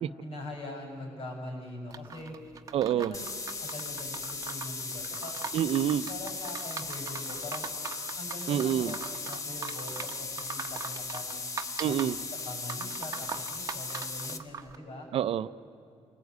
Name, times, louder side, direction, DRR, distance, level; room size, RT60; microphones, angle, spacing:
voice 1, 0.2-2.3 2.8-3.3 3.6-5.3 6.1-7.7 8.1-11.4 11.8-11.9 12.4-15.1, left 2 dB, 65° left, 2 dB, 7.4 m, -42 dB
sound 1, 1.9-14.8, right 6 dB, 35° right, 1.0 m, -41 dB
voice 2, 2.7-3.1 5.5-6.1 8.5-8.9 11.8-12.2 15.1-15.5, right 10 dB, 65° right, 14 dB, 0.7 m, -27 dB
sound 2, 3.1-14.4, left 3 dB, 30° left, 1.3 m, -37 dB
27.5 x 19.5 x 9.5 m, 2.6 s
wide cardioid pair, 160°, 11 cm